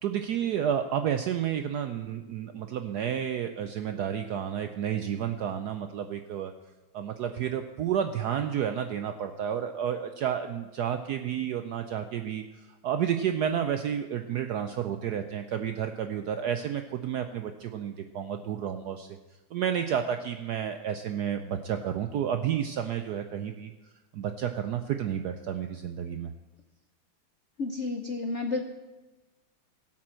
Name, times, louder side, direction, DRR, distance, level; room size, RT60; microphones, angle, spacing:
voice 1, 0.0-6.5 6.9-19.1 19.5-23.7 24.1-26.3, right 9 dB, 85° right, 7 dB, 0.8 m, -31 dB
voice 2, 27.6-28.6, left 3 dB, 75° left, 5 dB, 0.6 m, -31 dB
17.0 x 6.0 x 7.5 m, 1.2 s
omnidirectional pair, 2.4 m